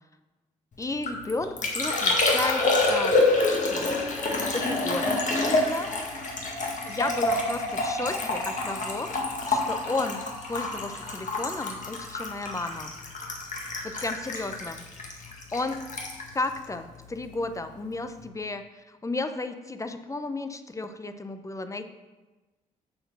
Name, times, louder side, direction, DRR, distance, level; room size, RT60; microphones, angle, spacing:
Liquid, 0.8-17.5 17.7-18.2, left 2 dB, 50° left, 1.8 m, -28 dB
voice 1, 0.8-3.2 3.7-3.9 4.5-5.9 6.9-9.1 9.4-10.2 10.5-12.9 13.8-14.9 15.2-15.3 15.5-15.8 16.3-21.9, left 3 dB, 20° left, 9 dB, 0.8 m, -33 dB
7.0 x 4.4 x 6.4 m, 1.2 s
supercardioid pair, 55°, 16 cm